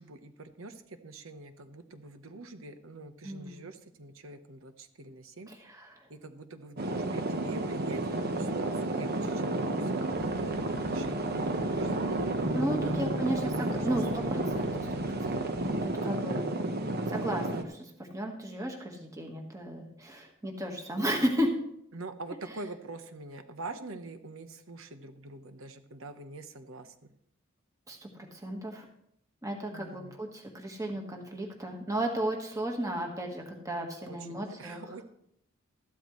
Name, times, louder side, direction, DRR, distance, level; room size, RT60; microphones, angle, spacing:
voice 1, 0.0-5.5 6.1-12.0 12.8-13.8 21.9-26.9 29.7-30.2 34.0-35.0, right 2 dB, 80° right, 9 dB, 1.1 m, -45 dB
voice 2, 3.2-3.6 5.7-6.0 8.3-8.6 12.5-14.9 15.3-15.4 15.8-16.7 17.1-21.5 27.9-28.8 29.4-35.0, right 1 dB, 15° right, 2 dB, 1.6 m, -34 dB
sound 1, 6.8-17.6, right 2 dB, 50° right, 1.1 m, -31 dB
sound 2, 10.1-15.9, left 2 dB, 60° left, 0.7 m, -44 dB
14.0 x 12.5 x 3.2 m, 0.72 s
head